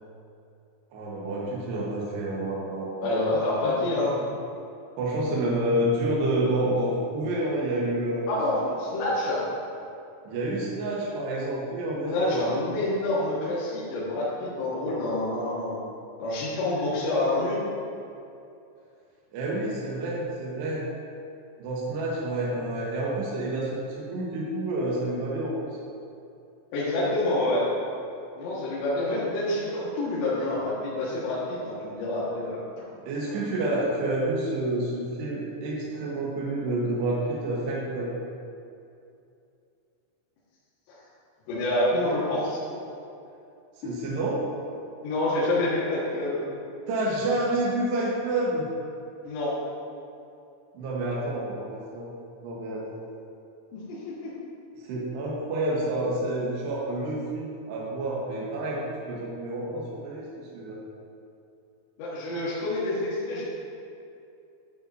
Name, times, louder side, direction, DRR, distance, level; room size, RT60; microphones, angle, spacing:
voice 1, 0.9-3.1 3.8-3.9 5.0-8.3 8.7-8.8 10.2-12.4 19.3-20.9 21.6-25.8 33.1-38.1 43.8-44.5 46.9-48.7 50.7-52.1 52.4-53.0 54.9-58.8 59.1-60.8, right 1 dB, 70° right, -6 dB, 2.8 m, -29 dB
voice 2, 3.0-4.1 8.3-9.4 12.0-15.8 16.2-17.6 26.7-27.7 28.4-32.9 40.9-41.0 41.5-42.6 43.8-43.9 45.0-46.4 49.2-49.6 53.7-54.3 62.0-63.4, left 2 dB, 65° left, -9 dB, 3.5 m, -27 dB
9.7 x 9.4 x 2.7 m, 2.6 s
omnidirectional pair, 6.0 m